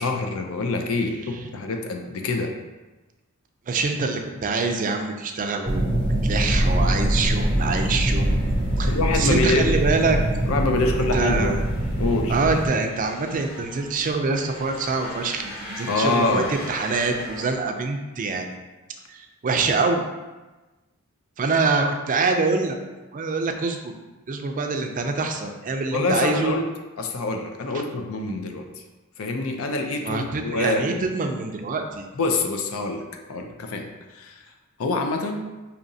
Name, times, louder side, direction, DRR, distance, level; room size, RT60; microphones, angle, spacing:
voice 1, 0.0-2.5 8.8-9.8 10.5-11.6 12.0-12.4 15.8-16.5 25.9-26.7 27.0-28.7 29.2-30.9 32.2-34.4 34.8-35.5, left 2 dB, 70° left, 4 dB, 0.5 m, -25 dB
voice 2, 3.7-5.8 6.2-8.3 8.8-10.2 11.1-11.6 12.3-15.5 15.8-18.5 19.1-20.0 21.4-22.8 23.1-23.8 24.3-26.6 30.0-32.1, right 4 dB, 40° right, 4 dB, 0.4 m, -25 dB
sound 1, 5.7-12.7, right 1 dB, 25° left, 0.8 m, -25 dB
sound 2, 6.4-17.5, equal, 40° left, 1.4 m, -31 dB
5.1 x 2.7 x 2.7 m, 1.2 s
head